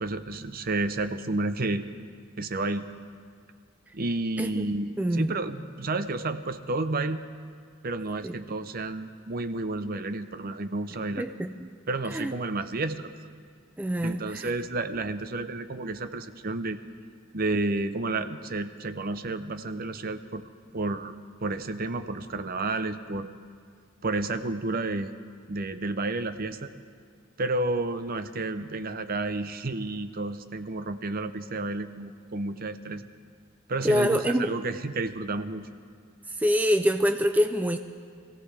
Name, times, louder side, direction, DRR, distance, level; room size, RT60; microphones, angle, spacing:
voice 1, 0.0-1.9 2.4-2.9 3.9-7.2 7.8-11.3 11.9-13.1 14.0-16.8 17.3-20.4 20.7-21.1 21.4-23.3 24.0-25.1 25.5-26.7 27.4-33.1 33.7-35.7, right 2 dB, 45° right, 10 dB, 0.7 m, -31 dB
voice 2, 5.0-5.3 8.2-8.3 11.2-11.5 12.1-12.3 13.8-14.5 33.8-34.5 36.4-37.8, equal, 10° right, 8 dB, 0.4 m, -25 dB
25.5 x 15.5 x 3.3 m, 2.1 s
head